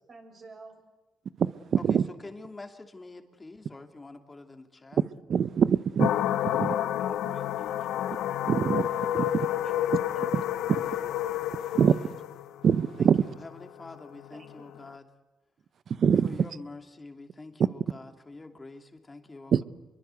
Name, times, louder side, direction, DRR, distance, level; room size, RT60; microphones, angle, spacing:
voice 1, 0.1-0.8 6.5-8.1 9.2-9.9 10.1-10.4 10.7-11.2 11.9-12.1 14.3-14.7, right 3 dB, 40° right, 7.3 m, -51 dB
voice 2, 1.4-2.0 5.3-6.1 6.6-6.7 8.5-8.9 9.1-9.2 11.7-12.0 12.6-13.2 15.9-16.3 19.5-19.6, right 7 dB, 55° right, 0.9 m, -23 dB
voice 3, 1.9-5.0 13.0-15.1 16.2-19.6, left 3 dB, 20° left, 2.7 m, -46 dB
sound 1, 6.0-14.9, left 12 dB, 80° left, 0.8 m, -30 dB
26.5 x 22.5 x 8.3 m
cardioid pair, 90°, 0 cm